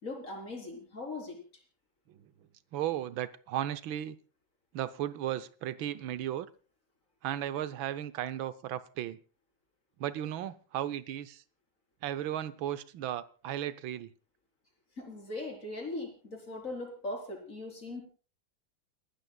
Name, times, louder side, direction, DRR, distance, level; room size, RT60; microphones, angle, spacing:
voice 1, 0.0-1.4 15.0-18.0, left 2 dB, 40° left, 2 dB, 4.6 m, -39 dB
voice 2, 2.7-4.2 4.7-6.5 7.2-9.2 10.0-11.4 12.0-14.1, right 11 dB, 90° right, 13 dB, 1.6 m, -35 dB
29.0 x 12.5 x 2.3 m, 0.38 s
omnidirectional pair, 2.1 m